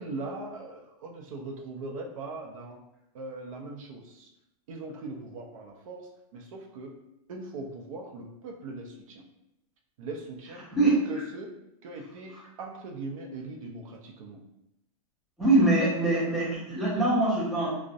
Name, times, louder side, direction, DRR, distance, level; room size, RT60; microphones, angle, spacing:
voice 1, 0.0-2.8 3.1-4.3 4.7-7.0 7.3-9.3 10.0-11.5 11.8-14.4, right 3 dB, 65° right, 1 dB, 0.5 m, -39 dB
voice 2, 15.4-17.7, right 2 dB, ahead, -10 dB, 0.4 m, -23 dB
2.3 x 2.0 x 2.6 m, 0.85 s
supercardioid pair, 175°, 18 cm